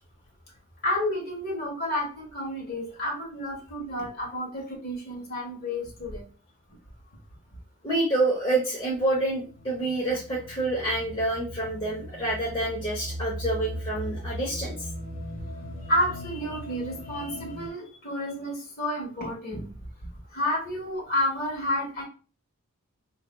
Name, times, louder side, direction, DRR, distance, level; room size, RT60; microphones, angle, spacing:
voice 1, 0.8-6.2 15.9-19.7 20.3-22.0, left 1 dB, 45° left, -1 dB, 1.5 m, -30 dB
voice 2, 7.8-14.9 17.1-17.4, right 2 dB, 25° left, -5 dB, 0.8 m, -28 dB
sound 1, 9.0-17.7, equal, 65° left, 1.3 m, -38 dB
4.8 x 2.7 x 2.3 m, 0.37 s
head